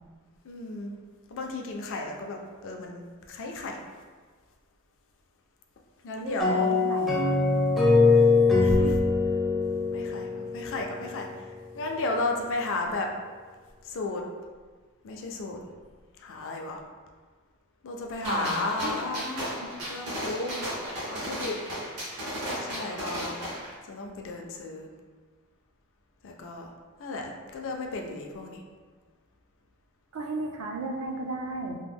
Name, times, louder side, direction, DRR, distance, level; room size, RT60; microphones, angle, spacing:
voice 1, 0.4-0.9 1.3-4.0 6.0-6.7 8.5-9.0 9.9-13.1 13.8-14.3 15.0-15.6 16.2-16.8 17.8-19.5 19.8-20.7 21.1-21.6 22.6-23.4 23.9-24.9 26.2-26.7 27.0-28.6, left 2 dB, 60° left, 2 dB, 0.4 m, -34 dB
voice 2, 6.2-7.9 18.2-18.5 18.8-19.9 30.1-31.8, right 2 dB, 65° right, 2 dB, 0.4 m, -36 dB
sound 1, 6.4-11.0, left 3 dB, ahead, 0.4 m, -22 dB
Gunshot gunfire, 18.2-23.7, equal, 90° right, 1.0 m, -35 dB
2.9 x 2.0 x 3.4 m, 1.5 s
head